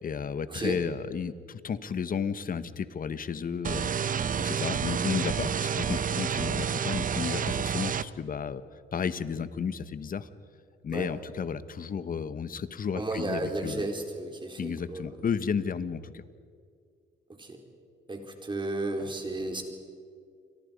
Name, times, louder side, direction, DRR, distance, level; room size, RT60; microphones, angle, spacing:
voice 1, 0.0-8.6 8.9-10.3 10.8-13.9 14.6-16.2, left 6 dB, 45° left, 13 dB, 1.3 m, -33 dB
sound 1, 3.6-8.0, right 7 dB, 45° right, 0.8 m, -29 dB
voice 2, 12.9-15.2 17.4-17.6 18.1-19.6, right 2 dB, 25° right, 3 dB, 4.4 m, -33 dB
29.5 x 23.0 x 5.3 m, 2.3 s
cardioid pair, 90°, 20 cm